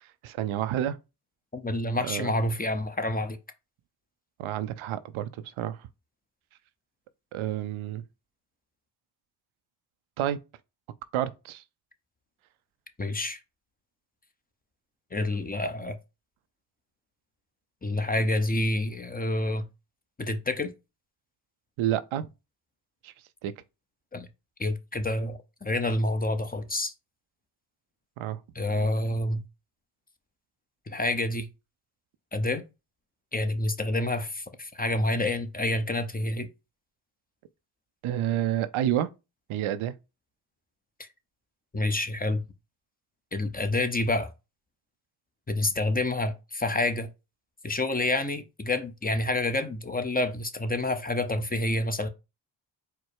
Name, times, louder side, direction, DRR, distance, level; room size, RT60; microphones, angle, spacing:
voice 1, 0.2-1.0 2.0-2.3 4.4-5.3 5.6-5.8 7.3-8.0 10.2-10.4 11.1-11.6 21.8-22.3 23.0-23.1 23.4-23.5 28.2-28.4 38.0-39.1 39.5-39.9, right 11 dB, 80° right, 0.6 m, -29 dB
voice 2, 1.5-3.4 13.0-13.4 15.1-16.0 17.8-19.7 20.2-20.7 24.1-24.3 24.6-26.9 28.5-29.4 30.9-31.5 32.3-32.6 33.3-36.5 41.0-41.1 41.7-42.4 43.3-44.3 45.5-47.1 47.6-52.1, left 2 dB, 20° left, 0.7 m, -28 dB
4.5 x 2.1 x 4.7 m
supercardioid pair, 55°, 48 cm